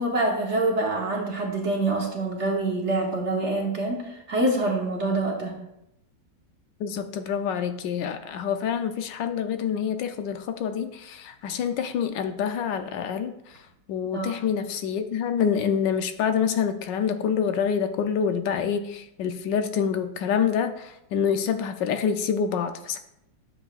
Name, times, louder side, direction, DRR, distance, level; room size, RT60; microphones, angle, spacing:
voice 1, 0.0-5.6 14.1-14.3, right 2 dB, 45° right, 0 dB, 1.2 m, -26 dB
voice 2, 6.8-13.3 13.9-23.0, left 7 dB, 80° left, 9 dB, 1.2 m, -26 dB
9.7 x 7.1 x 2.4 m, 0.81 s
omnidirectional pair, 2.0 m